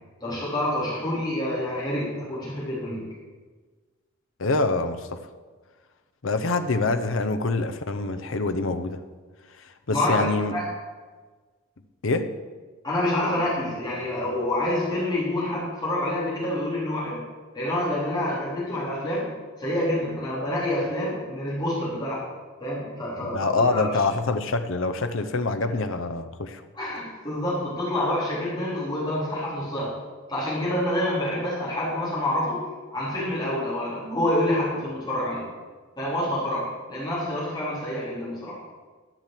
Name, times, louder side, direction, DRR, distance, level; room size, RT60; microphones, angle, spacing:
voice 1, 0.2-3.0 9.9-10.6 12.8-17.2 17.5-19.3 19.6-22.2 22.6-23.9 26.7-29.9 30.3-32.6 32.9-35.5 36.0-38.6, left 1 dB, 20° left, -8 dB, 3.4 m, -27 dB
voice 2, 4.4-5.2 6.2-9.0 9.9-10.5 12.0-12.3 23.2-26.6, left 3 dB, 65° left, 8 dB, 0.7 m, -25 dB
12.0 x 6.0 x 7.6 m, 1.4 s
head